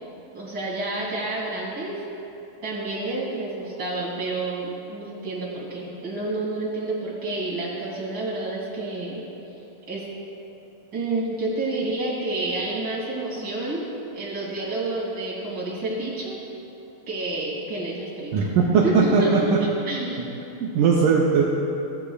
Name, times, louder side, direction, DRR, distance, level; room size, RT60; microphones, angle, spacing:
voice 1, 0.3-1.9 2.6-9.2 9.9-10.0 10.9-13.9 14.1-16.4 17.1-18.3 18.8-19.5 19.9-20.3, right 2 dB, 35° right, -6 dB, 2.3 m, -29 dB
voice 2, 18.3-19.6 20.6-21.4, right 5 dB, 80° right, -2 dB, 1.8 m, -19 dB
14.5 x 11.5 x 2.4 m, 2.9 s
omnidirectional pair, 4.4 m